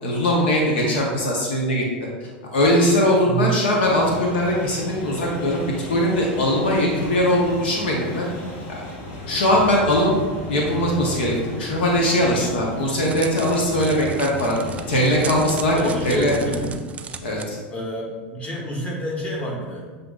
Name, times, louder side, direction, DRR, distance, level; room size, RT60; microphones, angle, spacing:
voice 1, 0.0-1.8 2.4-8.3 8.7-8.9 9.3-10.2 10.5-14.6 14.9-15.8 16.0-16.3 17.2-17.6, equal, 75° left, -1 dB, 0.8 m, -20 dB
sound 1, 3.8-16.6, left 1 dB, 50° left, 1.0 m, -35 dB
Crackle, 12.6-17.4, right 6 dB, 25° right, 0.3 m, -36 dB
voice 2, 15.7-16.8 17.7-18.1 18.3-19.9, right 2 dB, 25° left, -2 dB, 1.3 m, -28 dB
7.5 x 2.6 x 2.4 m, 1.4 s
hypercardioid pair, 95°, 6 cm